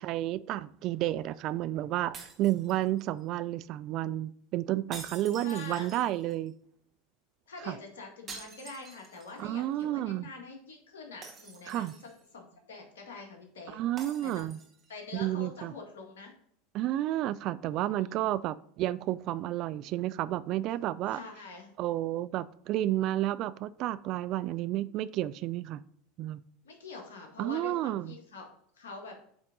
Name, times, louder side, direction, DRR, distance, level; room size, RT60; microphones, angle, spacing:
voice 1, 0.0-6.5 7.7-7.8 9.4-10.3 11.7-11.9 13.7-14.6 15.1-15.7 16.7-21.2 21.8-25.8 26.2-26.4 27.4-28.1, right 14 dB, 50° right, 16 dB, 0.3 m, -31 dB
sound 1, 2.1-3.2 4.9-6.5 8.3-9.5 9.8-9.9 11.2-12.3 14.0-14.9, right 4 dB, 35° right, 1.7 m, -47 dB
voice 2, 5.4-5.9 7.5-11.9 12.3-13.8 14.2-14.4 14.9-16.3 17.8-18.3 21.1-21.7 26.6-28.5 28.7-29.2, left 4 dB, 75° left, 2 dB, 1.8 m, -45 dB
8.5 x 3.6 x 3.9 m, 0.65 s
hypercardioid pair, 85°, 0 cm